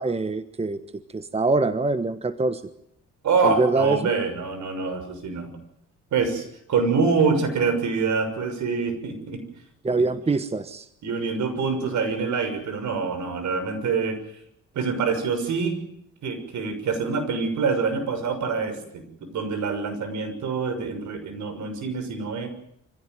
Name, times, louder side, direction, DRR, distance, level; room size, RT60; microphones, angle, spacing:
voice 1, 0.0-2.6 3.4-4.1 9.8-10.9, right 3 dB, 20° right, 12 dB, 1.3 m, -24 dB
voice 2, 3.2-5.6 6.1-9.4 9.9-10.0 11.0-14.2 14.7-15.8 16.2-19.0 19.3-22.5, right 5 dB, 70° right, 7 dB, 6.4 m, -25 dB
25.0 x 16.0 x 9.4 m, 0.76 s
cardioid pair, 90°, 30 cm